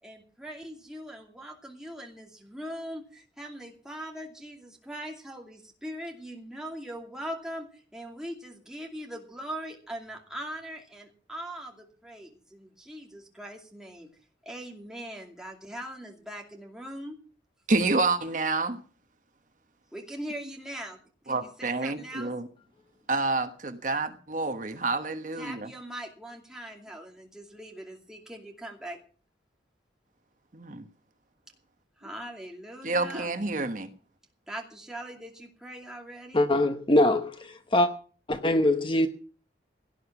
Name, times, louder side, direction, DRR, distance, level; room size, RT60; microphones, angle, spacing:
voice 1, 0.0-14.1 14.4-17.2 19.9-21.0 21.2-22.3 25.4-29.0 32.0-33.3 34.5-36.5, right 1 dB, 5° right, 2.5 m, -41 dB
voice 2, 17.7-18.8 21.3-22.5 23.1-25.7 30.5-30.9 32.8-33.9, right 3 dB, 45° right, 1.2 m, -28 dB
voice 3, 36.3-37.9 38.3-39.1, left 1 dB, 25° left, 0.9 m, -23 dB
17.5 x 10.0 x 5.9 m
head